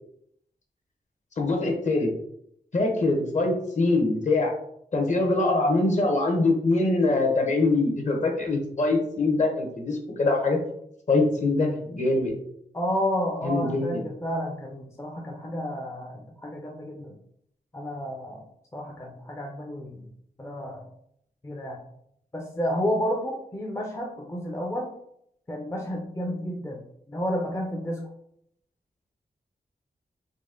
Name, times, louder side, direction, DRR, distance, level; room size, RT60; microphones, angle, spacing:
voice 1, 1.4-2.1 2.7-4.5 4.9-10.6 11.1-12.3 13.4-14.0, left 2 dB, 45° left, 2 dB, 1.0 m, -23 dB
voice 2, 12.7-17.1 17.7-18.4 18.7-20.1 20.4-20.8 21.4-21.8 22.3-24.9 25.5-26.8 27.1-28.1, equal, 15° left, 0 dB, 0.5 m, -31 dB
4.1 x 2.8 x 3.7 m, 0.72 s
wide cardioid pair, 125°, 17 cm